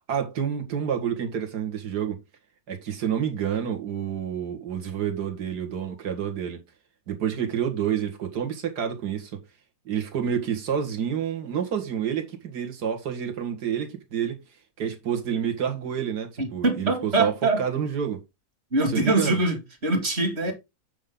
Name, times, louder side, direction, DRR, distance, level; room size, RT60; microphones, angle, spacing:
voice 1, 0.1-2.2 2.7-6.6 7.1-9.4 9.9-14.4 14.8-18.2 18.9-19.4 20.5-20.6, right 8 dB, 55° right, 2.3 m, -28 dB
voice 2, 16.4-17.6 18.7-20.5, right 2 dB, 35° right, 2.6 m, -24 dB
8.7 x 5.4 x 3.8 m
omnidirectional pair, 2.1 m